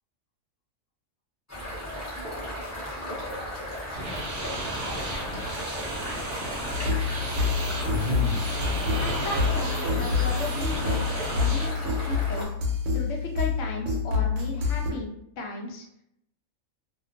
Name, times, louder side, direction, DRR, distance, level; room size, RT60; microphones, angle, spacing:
sound 1, 1.5-12.4, left 1 dB, 20° left, 0.4 m, -36 dB
sound 2, 3.9-11.7, right 1 dB, 60° right, 0.7 m, -33 dB
sound 3, 6.7-14.9, left 4 dB, 85° right, 1.0 m, -27 dB
voice 1, 9.0-12.5 12.9-15.9, left 2 dB, 70° left, 1 dB, 0.9 m, -35 dB
2.4 x 2.2 x 2.5 m, 0.74 s
omnidirectional pair, 1.4 m